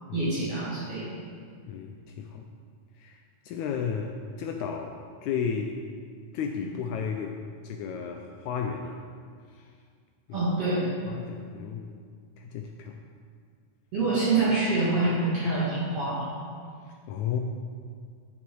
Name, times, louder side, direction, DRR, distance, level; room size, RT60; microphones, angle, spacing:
voice 1, 0.1-1.1 10.3-10.8 13.9-16.3, right 3 dB, 50° right, -10 dB, 2.9 m, -26 dB
voice 2, 1.7-2.5 3.0-3.2 3.5-5.8 6.3-7.4 7.6-9.0 9.5-9.7 10.3-10.4 11.1-11.9 12.4-13.0 17.1-17.4, left 7 dB, 85° left, 3 dB, 1.7 m, -33 dB
11.0 x 7.1 x 4.6 m, 2.1 s
omnidirectional pair, 4.0 m